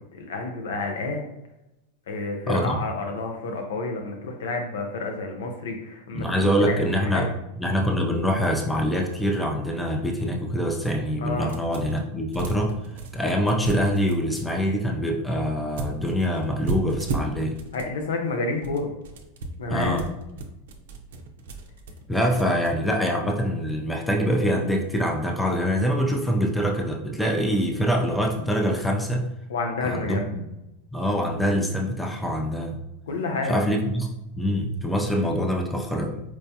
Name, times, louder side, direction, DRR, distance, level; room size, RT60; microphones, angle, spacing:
voice 1, 0.1-1.2 2.1-6.9 7.1-7.2 11.2-11.5 17.7-18.9 19.6-20.0 29.5-30.2 33.1-33.6, left 3 dB, 85° left, 3 dB, 0.5 m, -29 dB
voice 2, 2.5-2.8 6.1-12.7 13.1-17.6 19.7-20.1 22.1-29.3 29.8-30.2 30.9-32.8 33.4-34.1 34.3-36.2, equal, 5° left, 1 dB, 0.4 m, -24 dB
sound 1, 11.5-12.0 12.3-14.5 15.8-17.9 18.5-22.7, right 3 dB, 80° right, 0.5 m, -35 dB
4.5 x 2.2 x 2.7 m, 0.92 s
hypercardioid pair, 115°, 0 cm